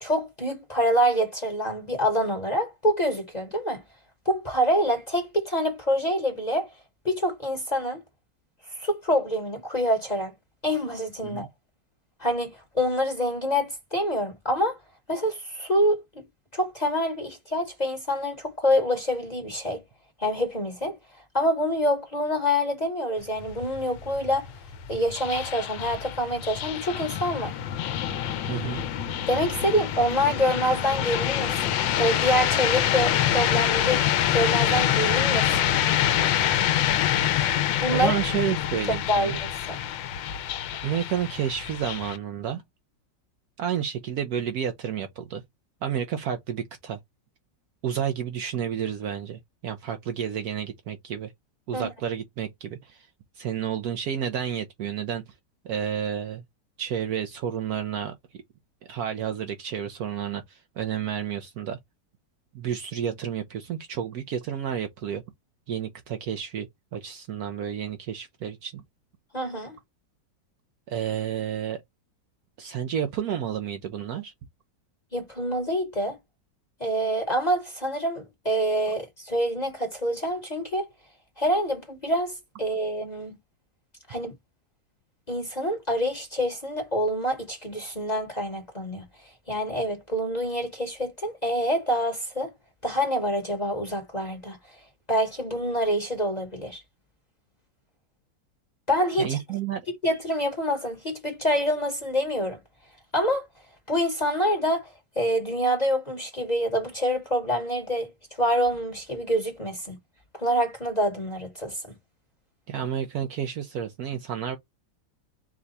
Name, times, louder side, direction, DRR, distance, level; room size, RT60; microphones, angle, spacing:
voice 1, 0.0-3.8 4.2-6.7 7.0-8.0 8.8-10.3 10.6-11.5 12.2-14.8 15.1-16.0 16.5-19.8 20.2-21.0 21.3-24.5 24.9-27.5 29.3-31.5 32.0-34.0 34.3-35.7 37.8-38.1 38.9-39.8 51.7-51.9 69.3-69.8 75.1-76.2 76.8-80.9 81.4-83.4 84.1-84.3 85.3-89.0 89.5-92.5 92.8-94.6 95.1-96.8 98.9-99.4 99.9-102.6 103.1-103.5 103.9-104.9 105.2-108.1 108.4-110.0 110.4-111.8, equal, 30° left, 1.0 m, -26 dB
sound 1, 23.2-42.2, left 11 dB, 90° left, 1.3 m, -26 dB
voice 2, 28.5-28.8 37.9-39.4 40.8-42.6 43.6-45.4 45.8-47.0 47.8-51.3 51.7-53.1 53.4-55.2 55.6-56.4 56.8-58.1 58.9-61.8 62.5-65.2 65.7-68.8 70.9-71.8 72.6-74.3 99.2-99.8 112.7-114.6, right 9 dB, 70° right, 1.0 m, -30 dB
4.8 x 2.3 x 4.0 m
omnidirectional pair, 2.0 m